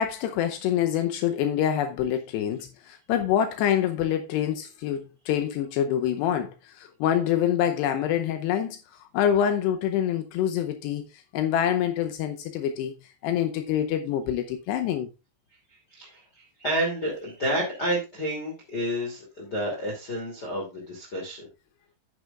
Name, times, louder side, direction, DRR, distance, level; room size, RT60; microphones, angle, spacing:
voice 1, 0.0-12.9 13.2-15.1, left 10 dB, 85° left, 2.4 m, -26 dB
voice 2, 15.9-21.5, right 1 dB, 30° left, 2.3 m, -30 dB
10.0 x 9.8 x 2.4 m
omnidirectional pair, 5.8 m